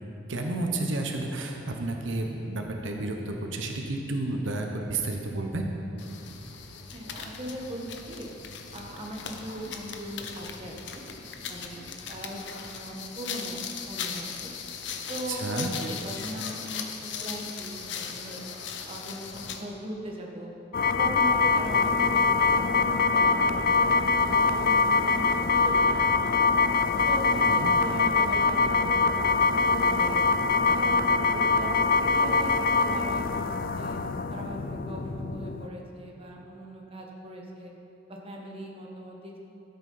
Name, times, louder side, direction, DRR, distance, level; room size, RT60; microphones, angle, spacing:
voice 1, 0.3-5.7 15.3-15.7 27.5-27.7, right 2 dB, 70° right, 2 dB, 1.0 m, -31 dB
sound 1, 6.0-19.7, left 6 dB, 65° left, 0.8 m, -38 dB
voice 2, 6.9-7.8 8.1-8.3 8.7-11.0 11.5-14.5 15.1-18.5 18.9-20.5 21.0-23.9 24.3-26.5 27.0-30.2 30.6-31.0 31.3-34.0 34.3-37.7 38.1-39.4, right 1 dB, 30° right, -1 dB, 1.5 m, -39 dB
sound 2, 20.7-35.7, left 4 dB, 50° left, 0.4 m, -24 dB
13.0 x 8.2 x 5.6 m, 2.9 s
head